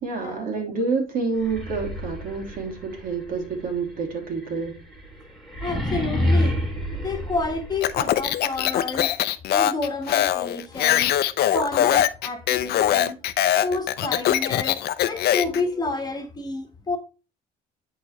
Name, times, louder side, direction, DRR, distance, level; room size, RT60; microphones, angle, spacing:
voice 1, 0.0-4.7, right 4 dB, 55° right, 2.9 m, -28 dB
sound 1, 1.3-8.2, left 1 dB, ahead, 2.7 m, -29 dB
voice 2, 5.6-6.6 6.9-9.1 9.5-11.1 11.5-13.2 13.6-17.0, left 3 dB, 25° left, 1.5 m, -29 dB
Speech, 7.8-15.6, left 12 dB, 70° left, 0.6 m, -22 dB
10.0 x 4.2 x 3.2 m
cardioid pair, 110°, 17 cm